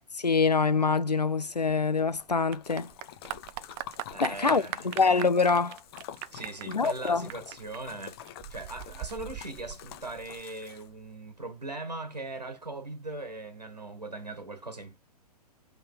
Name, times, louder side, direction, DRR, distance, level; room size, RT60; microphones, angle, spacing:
voice 1, 0.0-2.9 4.2-5.8 6.7-7.3, left 4 dB, 85° left, 0.6 m, -25 dB
Clapping / Applause, 1.4-10.4, right 14 dB, 20° right, 0.3 m, -42 dB
Splash splatter, 2.0-11.1, left 11 dB, 40° left, 0.7 m, -47 dB
voice 2, 4.1-4.9 6.3-8.2 8.5-15.0, right 2 dB, 85° right, 1.5 m, -40 dB
5.6 x 3.5 x 5.1 m
figure-of-eight pair, 110°, 20 cm